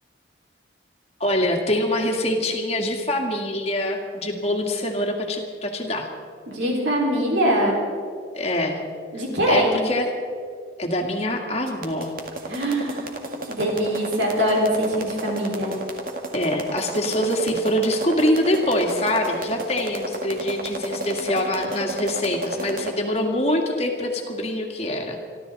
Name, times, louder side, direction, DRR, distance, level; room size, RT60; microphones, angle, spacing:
voice 1, 1.2-6.1 8.3-8.8 9.5-10.1 10.8-12.1 16.3-25.2, left 1 dB, 35° left, 2 dB, 1.9 m, -24 dB
voice 2, 6.5-7.8 9.1-9.8 12.5-13.1 13.5-15.7, equal, 80° right, -2 dB, 4.8 m, -22 dB
sound 1, 11.7-22.9, right 2 dB, 50° right, 1.9 m, -32 dB
27.0 x 13.0 x 4.1 m, 2.2 s
head